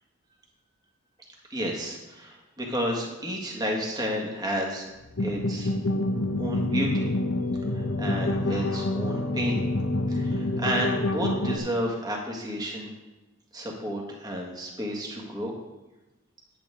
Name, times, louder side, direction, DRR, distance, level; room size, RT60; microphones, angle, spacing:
voice 1, 1.5-4.9 5.2-5.7 6.4-7.1 7.7-9.6 10.1-12.9 13.5-15.5, equal, 20° right, -1 dB, 1.7 m, -31 dB
sound 1, 5.0-11.6, left 1 dB, 65° left, 0.9 m, -27 dB
10.0 x 8.9 x 3.7 m, 1.1 s
head